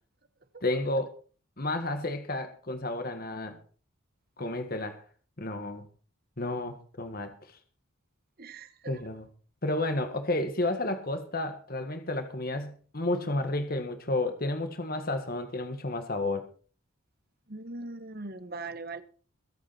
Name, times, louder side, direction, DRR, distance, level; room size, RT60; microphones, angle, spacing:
voice 1, 0.6-1.1 1.6-3.6 4.4-5.0 5.4-5.9 6.4-7.3 8.8-9.3 9.6-16.5, left 2 dB, 40° left, 7 dB, 1.7 m, -31 dB
voice 2, 8.4-9.0 17.5-19.0, right 3 dB, 45° right, 12 dB, 1.2 m, -40 dB
23.0 x 8.8 x 4.3 m, 0.40 s
head